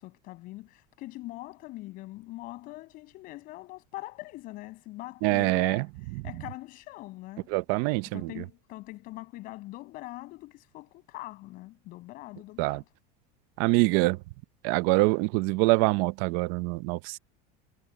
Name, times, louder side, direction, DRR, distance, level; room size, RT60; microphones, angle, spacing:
voice 1, 0.0-5.8 6.2-7.5 8.1-12.9, left 18 dB, 40° left, 7.0 m, -43 dB
voice 2, 5.2-5.8 7.5-8.3 12.6-12.8 13.6-14.2 14.6-17.2, right 23 dB, 50° right, 0.6 m, -25 dB
supercardioid pair, 165°, 21 cm